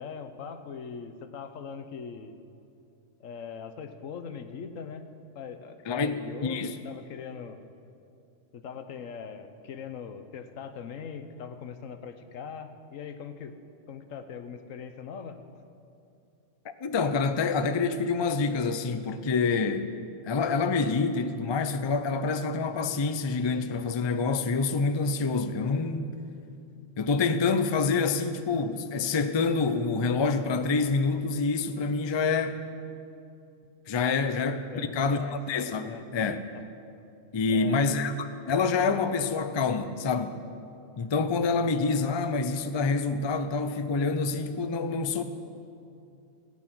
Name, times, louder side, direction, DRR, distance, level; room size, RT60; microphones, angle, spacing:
voice 1, 0.0-2.4 3.2-5.1 5.3-7.6 8.5-13.5 13.9-15.4 34.2-34.3 34.7-35.4 35.9-36.0 36.5-36.7 37.5-37.9, left 6 dB, 80° left, 1.2 m, -41 dB
voice 2, 5.9-6.7 16.6-19.9 20.2-26.1 27.0-32.6 33.9-36.4 37.3-40.4 41.0-45.2, left 4 dB, 40° left, 0.4 m, -27 dB
17.0 x 9.3 x 6.1 m
omnidirectional pair, 1.3 m